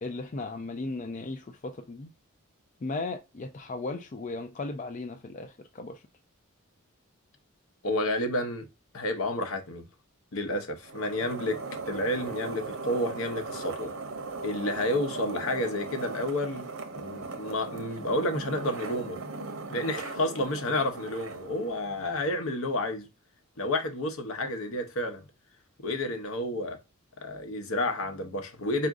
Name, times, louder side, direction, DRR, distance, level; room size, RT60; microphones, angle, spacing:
voice 1, 0.0-2.1 2.8-6.0, left 3 dB, 35° left, 0.4 m, -36 dB
voice 2, 7.8-8.7 8.9-9.9 10.3-11.6 11.9-13.9 14.4-16.7 16.9-19.2 19.7-23.1 23.6-25.3 25.8-26.8 27.2-28.9, left 1 dB, 75° left, 0.9 m, -30 dB
sound 1, 10.8-22.4, right 3 dB, 85° right, 0.8 m, -38 dB
4.2 x 2.5 x 3.6 m
head